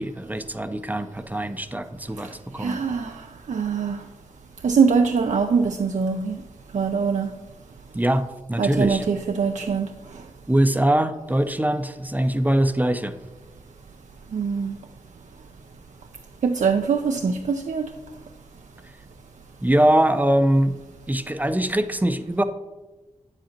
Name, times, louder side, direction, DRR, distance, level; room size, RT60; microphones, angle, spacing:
voice 1, 0.0-2.8 7.9-9.0 10.5-13.2 19.6-20.8 21.1-22.4, right 1 dB, 10° right, 9 dB, 0.5 m, -22 dB
voice 2, 2.6-3.2 3.5-4.0 4.6-6.4 6.7-7.3 8.6-9.9 14.3-14.7 16.4-17.9, right 5 dB, 70° right, 5 dB, 0.5 m, -23 dB
8.4 x 7.8 x 2.9 m, 1.1 s
cardioid pair, 50°, 13 cm